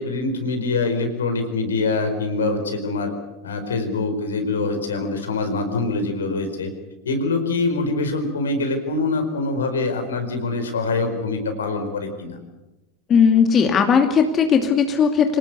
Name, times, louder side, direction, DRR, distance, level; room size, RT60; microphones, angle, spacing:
voice 1, 0.0-3.1 3.4-6.7 7.0-12.4, left 3 dB, 75° left, 6 dB, 4.6 m, -24 dB
voice 2, 13.1-15.4, left 6 dB, 30° left, 5 dB, 2.5 m, -17 dB
26.5 x 19.0 x 8.2 m, 1.0 s
figure-of-eight pair, 85°, 0 cm